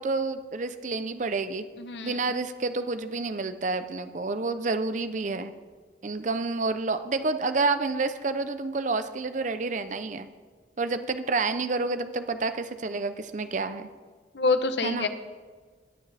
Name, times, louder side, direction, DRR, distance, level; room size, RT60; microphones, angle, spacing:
voice 1, 0.0-1.6 2.0-5.5 6.0-10.3 10.8-13.9 14.8-15.1, right 3 dB, 45° right, 10 dB, 0.6 m, -29 dB
voice 2, 1.8-2.2 14.3-15.1, left 3 dB, 80° left, 9 dB, 0.9 m, -26 dB
20.5 x 7.2 x 3.4 m, 1.5 s
head